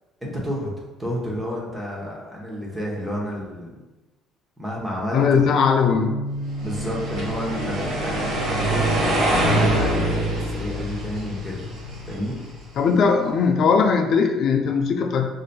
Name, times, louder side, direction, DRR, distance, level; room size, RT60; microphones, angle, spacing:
voice 1, 0.2-0.7 1.0-3.8 4.6-5.4 6.6-11.7 12.1-12.4, equal, 10° right, -4 dB, 0.8 m, -30 dB
voice 2, 5.1-6.2 12.8-15.3, left 5 dB, 55° left, 5 dB, 0.4 m, -19 dB
Bass guitar, 5.9-12.2, right 1 dB, 35° left, 1.3 m, -36 dB
sound 1, 6.6-12.8, right 1 dB, 85° right, 1.0 m, -24 dB
3.9 x 2.6 x 2.2 m, 1.1 s
cardioid pair, 105°, 0 cm